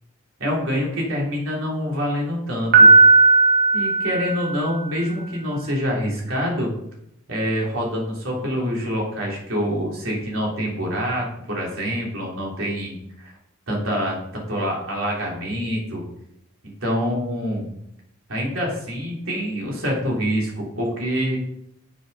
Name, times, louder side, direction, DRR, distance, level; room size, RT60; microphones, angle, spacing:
voice 1, 0.4-2.9 3.7-6.7 7.3-13.3 13.7-16.0 16.6-17.6 18.3-21.4, equal, 70° right, -3 dB, 3.4 m, -26 dB
Piano, 2.7-4.8, right 3 dB, 45° right, 1.5 m, -14 dB
7.4 x 7.1 x 5.5 m, 0.76 s
head